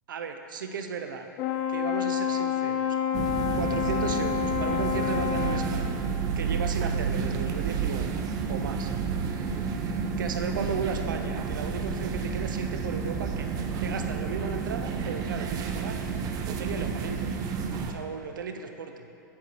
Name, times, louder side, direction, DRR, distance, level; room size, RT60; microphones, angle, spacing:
voice 1, 0.1-1.3 1.7-3.0 3.6-6.0 6.4-8.2 8.5-8.9 10.2-13.5 13.8-16.0 16.5-17.3 17.9-19.1, right 6 dB, 75° right, 6 dB, 0.7 m, -35 dB
Brass instrument, 1.4-5.8, left 9 dB, 45° left, 0.5 m, -28 dB
sound 1, 3.1-17.9, right 5 dB, 35° right, 0.7 m, -30 dB
8.4 x 4.8 x 6.0 m, 2.8 s
hypercardioid pair, 105°, 11 cm